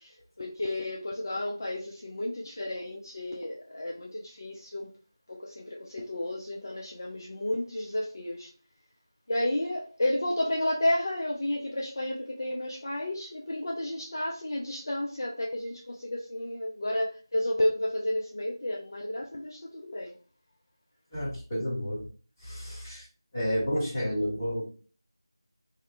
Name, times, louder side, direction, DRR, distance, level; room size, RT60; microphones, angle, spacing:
voice 1, 0.0-4.9 5.3-8.5 9.3-20.1, left 1 dB, 45° left, -1 dB, 0.4 m, -32 dB
voice 2, 21.1-22.1 22.4-23.1 23.3-24.6, equal, 15° left, -9 dB, 1.0 m, -30 dB
2.7 x 2.0 x 2.6 m, 0.39 s
figure-of-eight pair, 170°, 3 cm